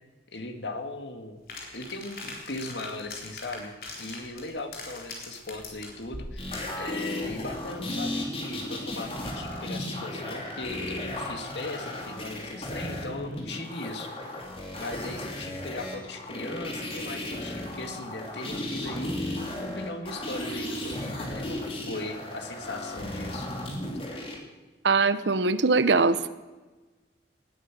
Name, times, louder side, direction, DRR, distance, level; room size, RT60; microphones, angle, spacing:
voice 1, 0.3-1.4 1.7-3.7 4.0-14.2 14.7-23.5, left 2 dB, 75° left, 6 dB, 2.1 m, -38 dB
sound 1, 1.5-6.8, left 3 dB, 55° left, 4.0 m, -41 dB
sound 2, 6.4-24.3 25.7-25.8, left 1 dB, 30° left, 3.2 m, -35 dB
voice 2, 24.8-26.3, right 4 dB, 85° right, 14 dB, 0.9 m, -22 dB
19.5 x 9.7 x 7.6 m, 1.2 s
head